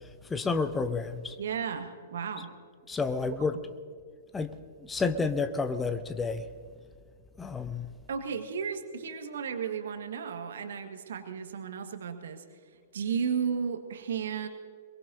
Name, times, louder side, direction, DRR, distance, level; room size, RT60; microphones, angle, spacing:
voice 1, 0.3-1.4 2.9-3.6 4.3-4.5 4.9-6.4 7.4-7.9, left 4 dB, 10° left, 11 dB, 0.7 m, -30 dB
voice 2, 1.4-2.5 3.3-3.5 8.1-12.4 12.9-14.5, right 6 dB, 60° right, 7 dB, 1.6 m, -34 dB
23.0 x 22.5 x 2.7 m, 2.1 s
figure-of-eight pair, 110°, 0 cm